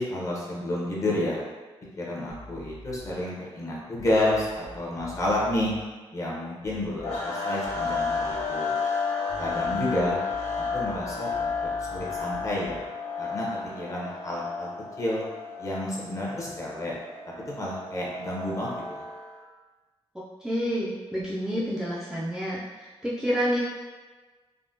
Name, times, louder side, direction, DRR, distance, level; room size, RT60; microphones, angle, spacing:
voice 1, 0.0-1.4 2.0-5.7 6.1-8.7 9.4-10.2 10.6-12.8 13.2-13.5 13.7-14.7 15.0-15.2 15.6-17.0 17.5-19.0, left 1 dB, 30° left, -5 dB, 0.6 m, -30 dB
sound 1, 2.3-3.3 3.9-5.9 6.6-7.4 7.6-8.6 9.3-12.9, equal, 70° right, 0.6 m, -46 dB
sound 2, 7.0-19.4, left 4 dB, 85° left, 0.6 m, -32 dB
voice 2, 20.4-23.6, equal, 5° right, -8 dB, 0.3 m, -29 dB
3.5 x 2.1 x 2.6 m, 1.3 s
wide cardioid pair, 180°, 10 cm